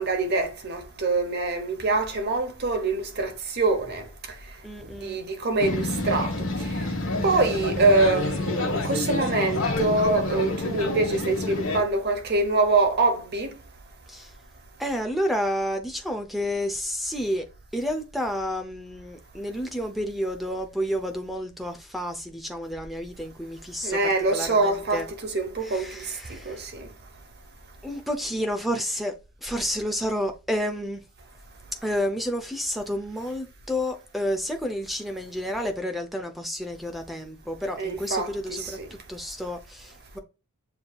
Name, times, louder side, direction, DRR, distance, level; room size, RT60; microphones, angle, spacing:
voice 1, 0.0-4.0 5.0-6.3 7.2-13.5 23.8-26.1 26.5-26.9 37.8-38.9, right 3 dB, 50° right, 0.9 m, -24 dB
voice 2, 4.6-5.2 14.1-14.3 14.8-17.5 17.7-24.0 24.3-25.1 25.6-26.6 27.8-29.1 29.4-31.0 31.8-38.8 39.1-40.2, equal, ahead, 0.5 m, -30 dB
sound 1, 5.6-11.8, left 2 dB, 70° left, 1.2 m, -28 dB
6.9 x 2.8 x 2.3 m
head